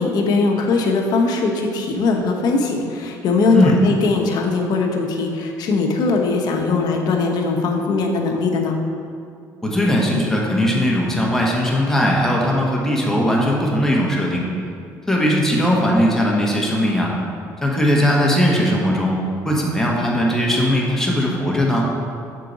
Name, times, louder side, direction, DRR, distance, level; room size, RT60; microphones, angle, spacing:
voice 1, 0.0-8.8, left 3 dB, 60° left, 1 dB, 0.9 m, -20 dB
voice 2, 9.6-14.4 15.1-17.1 17.6-19.2 19.4-21.9, equal, 5° left, -3 dB, 1.2 m, -19 dB
6.5 x 4.7 x 4.0 m, 2.4 s
cardioid pair, 100°, 8 cm